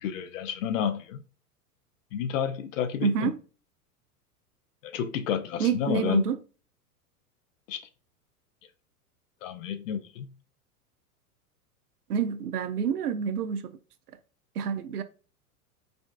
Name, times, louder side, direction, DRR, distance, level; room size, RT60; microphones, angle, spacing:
voice 1, 0.0-1.2 2.1-3.3 4.8-6.2 7.7-7.8 9.4-10.3, left 8 dB, 55° left, 0.6 m, -30 dB
voice 2, 3.0-3.3 5.6-6.4 12.1-13.7 14.6-15.0, right 7 dB, 80° right, 0.6 m, -27 dB
5.0 x 2.3 x 2.3 m
figure-of-eight pair, 90°, 46 cm